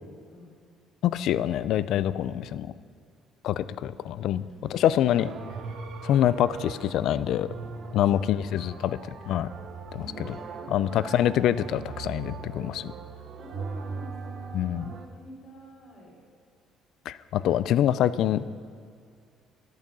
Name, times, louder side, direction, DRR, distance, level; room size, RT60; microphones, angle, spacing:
voice 1, 1.0-2.7 3.4-4.4 4.7-5.3 6.0-7.5 7.9-9.0 9.3-9.5 10.7-12.9 14.5-14.9 17.1-18.5, left 11 dB, 60° left, 16 dB, 0.3 m, -25 dB
voice 2, 4.3-5.0 7.8-8.3 8.6-8.8 9.9-11.0 13.0-16.2, left 1 dB, 40° left, -2 dB, 3.4 m, -49 dB
sound 1, 5.2-15.1, right 5 dB, 45° right, 0.9 m, -40 dB
11.5 x 9.2 x 6.2 m, 2.3 s
cardioid pair, 160°, 0 cm